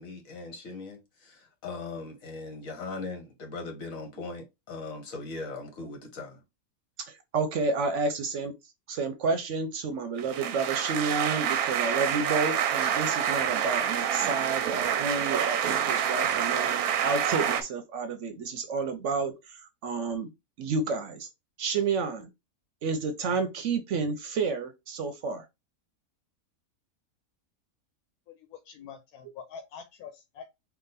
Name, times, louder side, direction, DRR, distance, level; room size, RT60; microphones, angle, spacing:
voice 1, 0.0-6.4, left 3 dB, 65° left, 1.5 m, -39 dB
voice 2, 7.0-8.5 8.9-20.3 20.6-21.3 21.6-22.3 22.8-25.4, right 4 dB, 65° right, 0.9 m, -30 dB
sound 1, 10.2-17.6, right 9 dB, 90° right, 1.1 m, -27 dB
voice 3, 28.5-30.5, left 7 dB, 90° left, 1.1 m, -45 dB
3.7 x 2.4 x 3.9 m
omnidirectional pair, 1.5 m